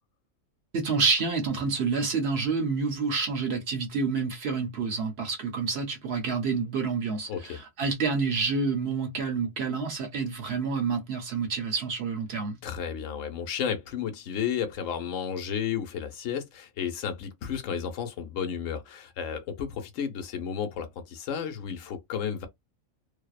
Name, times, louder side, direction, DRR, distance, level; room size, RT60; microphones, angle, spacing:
voice 1, 0.7-12.6, right 4 dB, 60° right, 0.8 m, -28 dB
voice 2, 7.3-7.6 12.6-22.5, left 8 dB, 80° left, 1.0 m, -32 dB
2.7 x 2.0 x 2.3 m
omnidirectional pair, 1.3 m